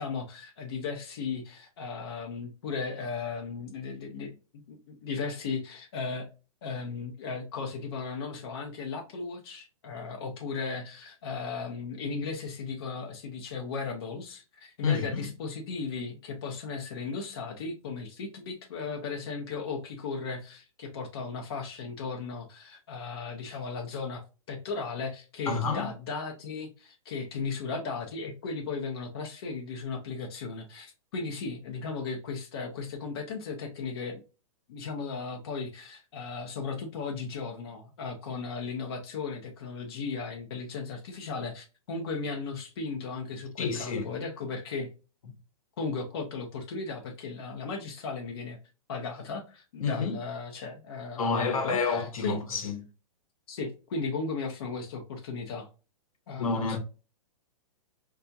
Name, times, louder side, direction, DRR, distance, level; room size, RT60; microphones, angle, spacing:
voice 1, 0.0-4.4 4.7-6.3 6.6-24.2 24.5-34.2 34.7-44.9 45.8-48.6 48.9-52.4 53.5-55.7 56.3-56.8, left 4 dB, 45° left, 0.7 m, -36 dB
voice 2, 14.8-15.3 25.5-25.9 43.6-44.1 49.8-50.1 51.2-52.9 56.4-56.8, left 4 dB, 75° left, 1.0 m, -29 dB
4.8 x 2.3 x 2.7 m
hypercardioid pair, 175°, 18 cm